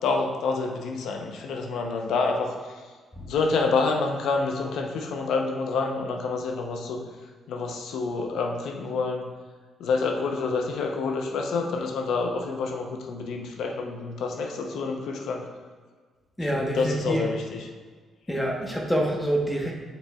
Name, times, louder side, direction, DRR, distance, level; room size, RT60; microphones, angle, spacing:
voice 1, 0.0-2.5 3.3-7.0 7.5-9.3 9.8-15.4 16.4-17.7, left 4 dB, 75° left, 2 dB, 0.7 m, -28 dB
voice 2, 16.4-17.3 18.3-19.7, right 1 dB, 10° left, 0 dB, 1.1 m, -26 dB
7.2 x 6.1 x 2.3 m, 1.5 s
cardioid pair, 90°, 0 cm